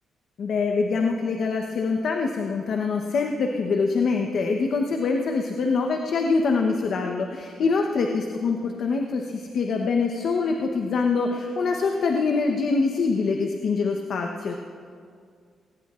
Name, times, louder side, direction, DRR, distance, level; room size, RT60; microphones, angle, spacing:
voice 1, 0.4-14.5, left 4 dB, 60° left, 2 dB, 0.9 m, -24 dB
20.5 x 19.0 x 2.5 m, 2.2 s
cardioid pair, 110°, 0 cm